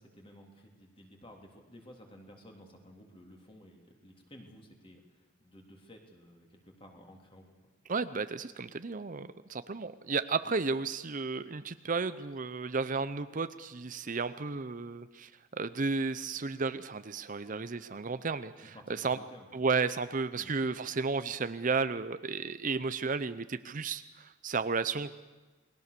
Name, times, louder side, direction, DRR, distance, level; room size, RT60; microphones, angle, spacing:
voice 1, 0.0-7.5 18.7-19.5 20.4-20.6, equal, 25° left, 2 dB, 3.3 m, -54 dB
voice 2, 7.9-19.2 19.5-25.1, right 4 dB, 40° right, 12 dB, 0.7 m, -33 dB
29.0 x 21.0 x 6.8 m, 1.3 s
head